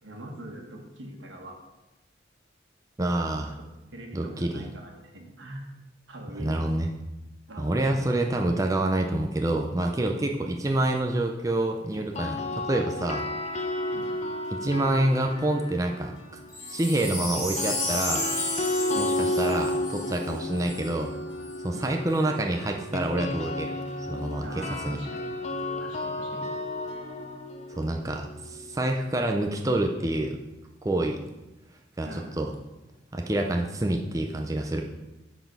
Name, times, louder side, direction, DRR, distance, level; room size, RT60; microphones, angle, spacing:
voice 1, 0.0-1.6 3.9-5.6 6.1-6.6 7.5-7.8 13.9-14.2 18.9-19.1 21.7-21.9 24.4-25.3 25.8-26.5 32.0-32.4, right 1 dB, 90° right, 1 dB, 1.5 m, -42 dB
voice 2, 3.0-3.5 4.1-4.7 6.4-6.9 7.6-13.2 14.5-16.1 16.7-18.3 19.0-21.1 21.6-23.7 24.1-25.0 27.7-30.4 30.8-31.2 32.0-32.5 33.1-34.8, right 1 dB, 20° right, 2 dB, 0.5 m, -27 dB
sound 1, 11.9-16.1 17.3-29.2, left 1 dB, 35° left, 0.6 m, -33 dB
sound 2, 13.6-29.2, left 1 dB, 70° left, 1.5 m, -49 dB
Wind chime, 16.5-20.9 21.4-21.5, left 1 dB, 20° left, 2.7 m, -32 dB
9.0 x 4.1 x 5.3 m, 1.0 s
head